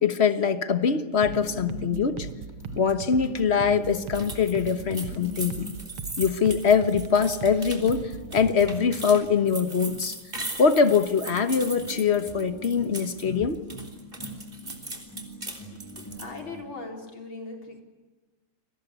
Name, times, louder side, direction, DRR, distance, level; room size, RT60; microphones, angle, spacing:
voice 1, 0.0-2.3 2.7-5.7 6.2-10.2 10.6-13.6, left 6 dB, 35° left, 1.3 m, -23 dB
sound 1, 1.2-16.7, left 1 dB, 10° left, 3.5 m, -42 dB
sound 2, 1.2-8.8, right 6 dB, 75° right, 1.9 m, -39 dB
sound 3, 4.1-13.3 13.5-16.4, right 2 dB, 25° right, 3.7 m, -39 dB
voice 2, 15.7-17.8, left 3 dB, 70° left, 4.7 m, -40 dB
29.5 x 22.5 x 8.3 m
omnidirectional pair, 2.3 m